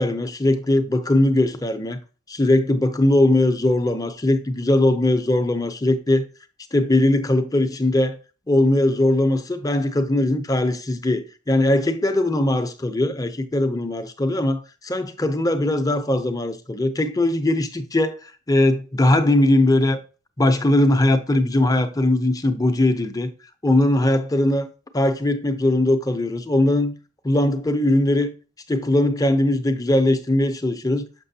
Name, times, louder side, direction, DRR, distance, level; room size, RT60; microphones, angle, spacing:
voice 1, 0.0-2.0 2.3-6.2 6.7-8.2 8.5-20.0 20.4-23.3 23.6-24.7 24.9-26.9 27.2-28.3 28.7-31.0, left 1 dB, 20° left, 0.6 m, -20 dB
6.7 x 5.9 x 2.7 m
head